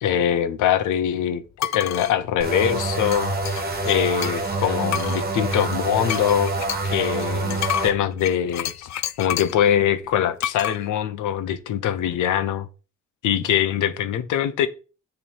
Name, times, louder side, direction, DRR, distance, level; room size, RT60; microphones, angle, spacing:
voice 1, 0.0-3.3 3.8-6.5 6.8-8.9 9.2-12.7 13.2-14.7, left 9 dB, 85° left, 1.0 m, -23 dB
sound 1, 1.6-2.1 3.1-4.5 4.9-9.6 10.4-10.8, left 11 dB, 65° left, 0.6 m, -30 dB
sound 2, 2.4-7.9, right 2 dB, 30° right, 1.6 m, -26 dB
7.2 x 3.5 x 6.1 m
cardioid pair, 90°, 30 cm